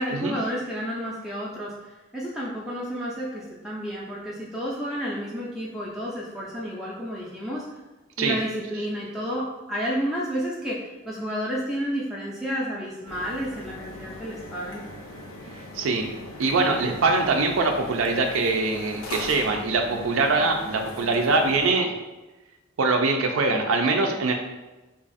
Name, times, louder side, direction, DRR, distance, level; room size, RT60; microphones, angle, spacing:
voice 1, 0.0-1.7 2.1-7.7 8.2-14.8, equal, ahead, -6 dB, 0.4 m, -31 dB
sound 1, 13.1-21.7, left 2 dB, 80° left, 0.6 m, -40 dB
voice 2, 15.7-16.1 16.4-21.9 22.8-24.3, right 3 dB, 80° right, 3 dB, 0.4 m, -23 dB
2.8 x 2.4 x 3.9 m, 1.1 s
head